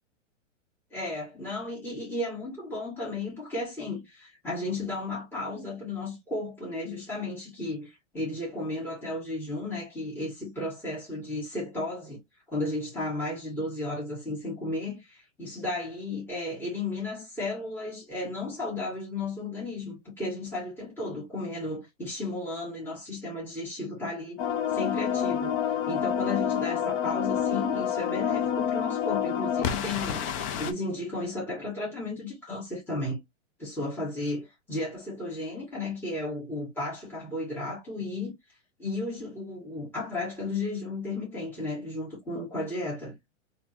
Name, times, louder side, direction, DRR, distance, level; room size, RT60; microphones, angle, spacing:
voice 1, 0.9-12.2 12.5-24.4 24.7-30.3 30.6-33.2 33.6-38.3 38.8-43.2, left 2 dB, 5° left, 1.9 m, -34 dB
sound 1, 24.4-30.7, left 8 dB, 25° left, 0.4 m, -28 dB
3.6 x 3.0 x 2.8 m
hypercardioid pair, 135°, 37 cm